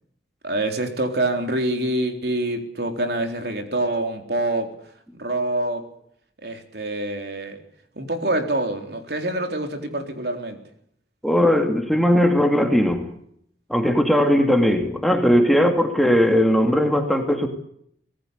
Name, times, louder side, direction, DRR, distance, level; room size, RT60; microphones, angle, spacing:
voice 1, 0.4-4.7 5.1-5.8 6.4-7.6 8.0-10.6, right 1 dB, 60° right, 5 dB, 4.0 m, -26 dB
voice 2, 11.2-13.1 13.7-17.5, equal, ahead, 4 dB, 2.6 m, -18 dB
25.0 x 18.5 x 8.3 m, 0.69 s
head